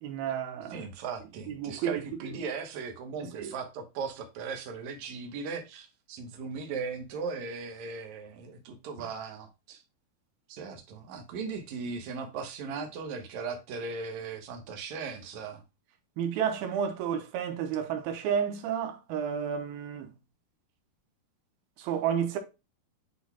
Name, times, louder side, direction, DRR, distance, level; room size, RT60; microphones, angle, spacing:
voice 1, 0.0-0.8 1.5-2.0 3.2-3.5 16.2-20.1 21.8-22.4, right 8 dB, 80° right, 2.6 m, -31 dB
voice 2, 0.7-9.8 10.5-15.6, right 5 dB, 65° right, 2.0 m, -38 dB
9.8 x 4.4 x 2.2 m
omnidirectional pair, 4.3 m